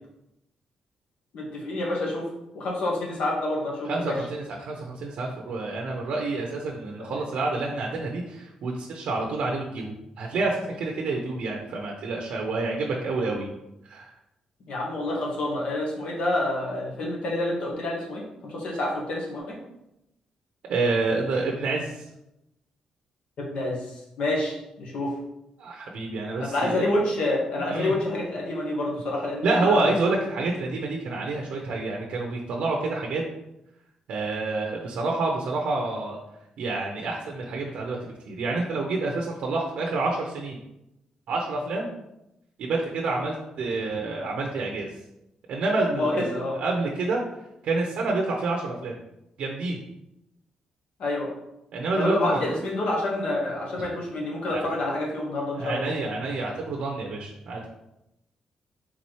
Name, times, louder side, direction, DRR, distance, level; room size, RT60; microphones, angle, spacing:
voice 1, 1.3-2.3 2.5-4.2 7.0-7.1 14.7-19.6 23.4-25.1 26.4-29.9 45.9-46.6 51.0-51.3 52.0-55.9, left 1 dB, 60° left, -2 dB, 1.2 m, -28 dB
voice 2, 3.9-13.5 13.9-14.1 20.7-22.0 25.6-26.9 27.7-27.9 29.4-33.2 34.1-36.2 36.6-40.6 41.3-41.9 42.6-44.9 45.5-47.2 47.6-48.9 49.4-49.8 51.7-52.4 54.5-54.6 55.6-57.7, right 3 dB, 70° right, 0 dB, 0.6 m, -28 dB
4.2 x 3.7 x 3.1 m, 0.87 s
wide cardioid pair, 165°, 2 cm